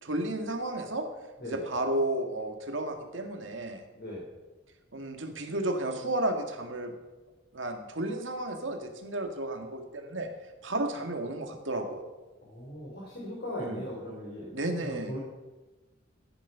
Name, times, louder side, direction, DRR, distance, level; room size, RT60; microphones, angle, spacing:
voice 1, 0.0-1.0 1.4-3.8 4.9-6.9 7.5-10.3 10.6-12.0 13.6-13.8 14.5-15.1, right 1 dB, 75° right, 4 dB, 1.9 m, -32 dB
voice 2, 4.0-4.3 12.4-14.5 14.8-15.2, left 1 dB, 55° left, -4 dB, 3.7 m, -38 dB
15.0 x 9.9 x 5.7 m, 1.2 s
head